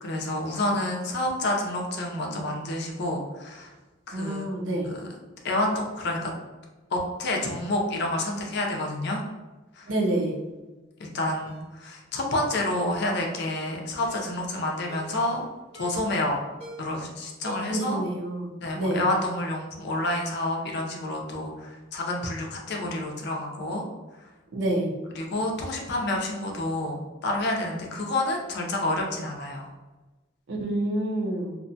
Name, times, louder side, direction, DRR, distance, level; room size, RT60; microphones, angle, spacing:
voice 1, 0.0-3.7 4.1-5.1 5.4-6.3 6.9-9.2 9.7-9.9 11.0-15.4 15.8-16.4 16.8-18.0 18.6-23.8 25.2-29.7, left 1 dB, 55° left, 0 dB, 0.5 m, -29 dB
voice 2, 4.1-4.9 9.9-10.4 17.7-18.5 18.8-19.0 24.5-25.0 30.5-31.6, right 1 dB, 65° right, -1 dB, 0.5 m, -27 dB
Ringtone, 11.5-11.7 12.3-12.5 13.2-13.4 14.0-14.3 14.9-15.2 15.7-16.1 16.6-17.0 17.5-17.9 18.2-18.3, equal, 30° right, 0.7 m, -45 dB
2.5 x 2.2 x 2.6 m, 1.2 s
head